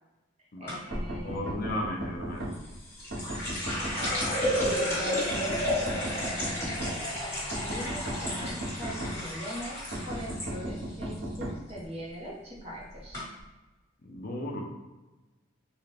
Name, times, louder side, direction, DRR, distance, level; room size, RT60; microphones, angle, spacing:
voice 1, 0.4-1.5 3.9-4.2 4.6-9.8 10.0-13.3, equal, 35° right, -4 dB, 1.0 m, -42 dB
sound 1, 0.7-1.1 2.5-10.5 10.8-11.4 11.7-12.0 12.7-12.8 13.1-13.2, equal, 15° left, 1.5 m, -32 dB
sound 2, 0.9-2.5 3.1-4.7 5.3-6.9 7.5-9.1 9.9-11.5, right 1 dB, 70° right, 1.1 m, -35 dB
voice 2, 1.2-2.4 14.0-14.6, left 1 dB, 50° left, -1 dB, 0.6 m, -35 dB
3.8 x 2.4 x 3.2 m, 1.1 s
head